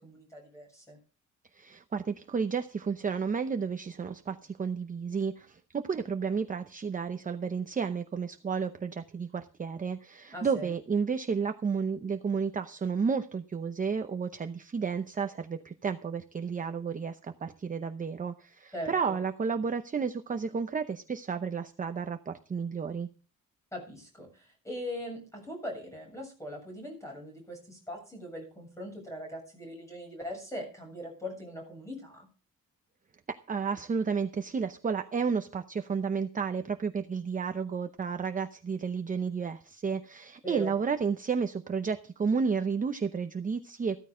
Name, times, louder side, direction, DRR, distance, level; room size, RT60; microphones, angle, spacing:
voice 1, 0.0-1.0 10.3-10.7 18.7-19.2 23.7-32.3 40.4-40.7, equal, 10° left, 1 dB, 7.4 m, -41 dB
voice 2, 1.5-23.1 33.3-44.0, right 5 dB, 25° right, 7 dB, 0.7 m, -32 dB
15.0 x 13.5 x 3.8 m, 0.37 s
wide cardioid pair, 165°, 32 cm